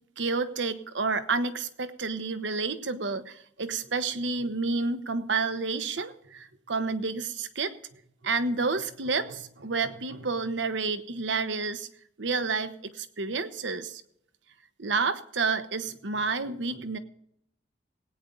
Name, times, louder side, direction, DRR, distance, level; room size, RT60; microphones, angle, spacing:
voice 1, 0.2-7.7 8.2-11.9 12.2-14.0 14.8-17.0, right 4 dB, 75° right, 11 dB, 1.0 m, -30 dB
18.0 x 9.2 x 3.8 m, 0.70 s
head